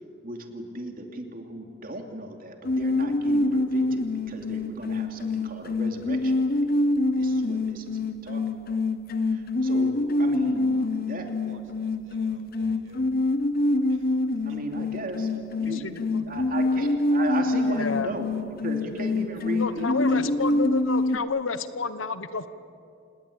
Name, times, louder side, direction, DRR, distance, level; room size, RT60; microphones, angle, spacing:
voice 1, 0.2-6.6 7.2-8.4 8.7-8.8 9.2-11.3 14.4-20.3, right 1 dB, 45° right, 3 dB, 2.8 m, -36 dB
sound 1, 2.6-21.2, left 2 dB, 50° left, 0.9 m, -26 dB
voice 2, 10.7-13.1 13.9-14.2 14.5-14.6 16.3-16.4 19.4-20.5, right 3 dB, 80° right, 5 dB, 2.5 m, -51 dB
voice 3, 15.6-16.0 17.6-18.1 18.9-19.0 19.5-22.5, left 4 dB, 85° left, 13 dB, 1.1 m, -30 dB
27.5 x 19.5 x 8.7 m, 2.6 s
head